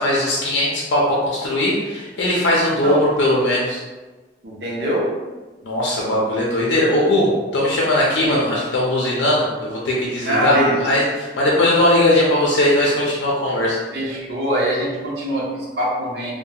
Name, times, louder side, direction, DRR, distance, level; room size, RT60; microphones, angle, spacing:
voice 1, 0.0-3.8 5.6-13.8, left 1 dB, 90° left, -5 dB, 0.5 m, -19 dB
voice 2, 4.4-5.1 8.2-8.4 10.2-10.8 13.9-16.3, equal, 65° right, -5 dB, 0.7 m, -23 dB
2.7 x 2.2 x 2.3 m, 1.2 s
head